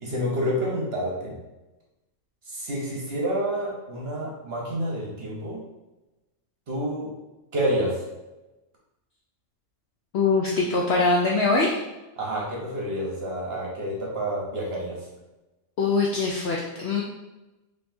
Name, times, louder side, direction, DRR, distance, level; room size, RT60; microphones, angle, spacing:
voice 1, 0.0-1.4 2.5-5.6 6.7-7.1 7.5-7.9 12.2-15.0, equal, 50° right, -3 dB, 1.0 m, -28 dB
voice 2, 10.1-11.8 15.8-17.0, left 3 dB, 70° left, -2 dB, 0.6 m, -23 dB
4.4 x 3.2 x 2.6 m, 1.0 s
omnidirectional pair, 1.6 m